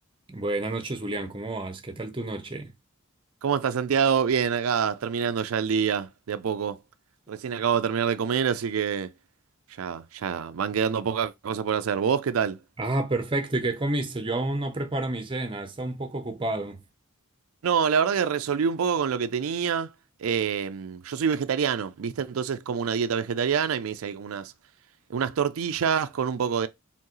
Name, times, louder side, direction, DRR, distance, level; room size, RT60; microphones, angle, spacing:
voice 1, 0.3-2.7 12.8-16.8, right 2 dB, 25° right, 0.7 m, -29 dB
voice 2, 3.4-6.8 7.3-9.1 9.8-12.6 17.6-19.9 20.2-24.5 25.1-26.7, right 7 dB, 85° right, 0.4 m, -26 dB
4.6 x 3.6 x 3.0 m
head